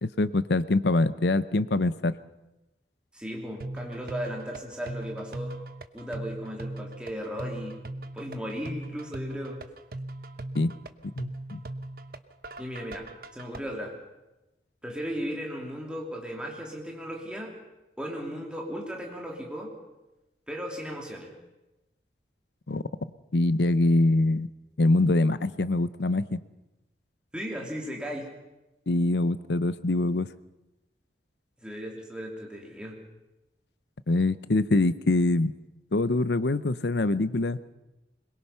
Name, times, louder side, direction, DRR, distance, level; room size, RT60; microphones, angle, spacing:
voice 1, 0.0-2.2 10.5-10.7 11.2-11.6 22.7-22.8 23.3-24.5 24.8-26.4 28.9-30.3 34.1-35.5 35.9-37.6, left 2 dB, 75° left, 15 dB, 0.7 m, -24 dB
voice 2, 3.1-5.6 5.9-7.8 8.1-9.6 12.6-13.1 13.3-13.9 14.8-17.5 18.0-19.7 20.5-21.3 27.3-28.3 31.6-33.0, equal, 5° right, -1 dB, 3.0 m, -36 dB
sound 1, 3.6-13.6, right 2 dB, 55° right, 1.0 m, -39 dB
22.5 x 21.5 x 5.7 m, 0.99 s
head